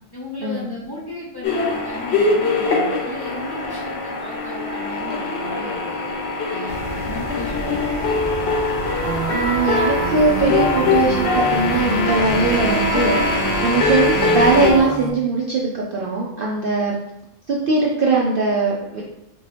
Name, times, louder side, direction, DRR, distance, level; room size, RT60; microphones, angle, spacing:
voice 1, 0.1-6.1 6.5-8.1, left 2 dB, 20° left, -5 dB, 0.7 m, -35 dB
sound 1, 1.4-14.7, left 3 dB, 60° left, 0.9 m, -22 dB
sound 2, 6.7-14.8, left 1 dB, 80° left, 1.2 m, -32 dB
sound 3, 9.0-15.1, right 4 dB, 75° right, 1.0 m, -27 dB
voice 2, 9.3-17.0 17.5-19.0, right 3 dB, 60° right, -3 dB, 0.6 m, -20 dB
4.3 x 2.7 x 3.2 m, 0.86 s
omnidirectional pair, 1.3 m